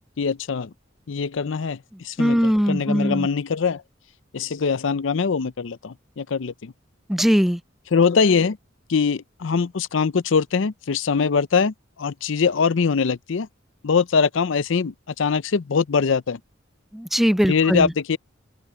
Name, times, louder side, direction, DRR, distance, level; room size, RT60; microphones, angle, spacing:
voice 1, 0.2-0.7 1.1-1.8 2.0-3.8 4.3-6.7 7.9-8.6 8.9-13.5 13.8-16.4 17.4-18.2, left 5 dB, 75° left, 0.5 m, -22 dB
voice 2, 2.2-3.3 7.1-7.6 16.9-17.9, equal, ahead, 0.4 m, -20 dB
open air
head